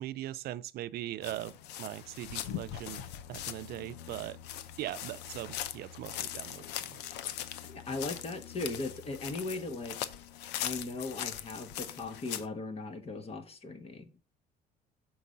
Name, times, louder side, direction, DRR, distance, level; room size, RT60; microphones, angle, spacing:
voice 1, 0.0-1.5 1.8-4.4 4.8-7.0, right 14 dB, 70° right, 0.4 m, -40 dB
sound 1, 1.2-12.5, left 11 dB, 90° left, 0.6 m, -41 dB
voice 2, 7.7-9.9 10.6-14.2, left 2 dB, 35° left, 1.1 m, -38 dB
6.4 x 4.6 x 5.4 m
cardioid pair, 110°, 17 cm